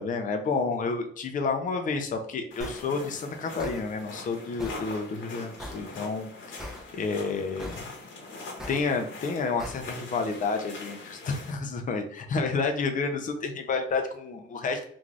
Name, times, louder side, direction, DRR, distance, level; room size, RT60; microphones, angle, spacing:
voice 1, 0.0-7.9 8.7-14.9, left 4 dB, 40° left, 5 dB, 0.5 m, -30 dB
sound 1, 2.5-11.5, left 3 dB, 75° left, 1.0 m, -43 dB
sound 2, 2.6-2.8 3.6-3.8 4.6-4.8 5.6-5.8 6.6-6.8 7.6-7.8 8.6-8.8 9.6-9.8, left 1 dB, ahead, 0.7 m, -38 dB
2.5 x 2.4 x 3.2 m, 0.65 s
cardioid pair, 90°, 20 cm